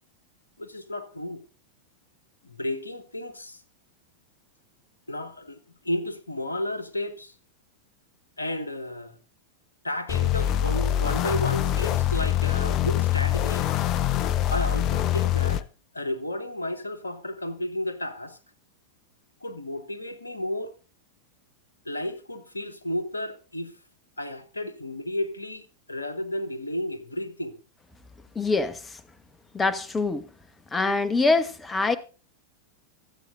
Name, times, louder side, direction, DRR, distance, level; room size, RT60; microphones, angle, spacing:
voice 1, 0.6-1.4 2.4-3.6 5.1-5.6 5.8-7.3 8.4-9.2 9.8-13.7 14.5-15.7 15.9-18.4 19.4-20.7 21.8-23.7 24.2-27.6, left 1 dB, 80° left, 1.2 m, -32 dB
sound 1, 10.1-15.6, left 11 dB, 35° left, 0.6 m, -24 dB
voice 2, 28.3-29.0 29.5-30.2 30.7-32.0, left 3 dB, 15° left, 1.1 m, -24 dB
25.0 x 8.4 x 2.6 m
figure-of-eight pair, 90°, 0 cm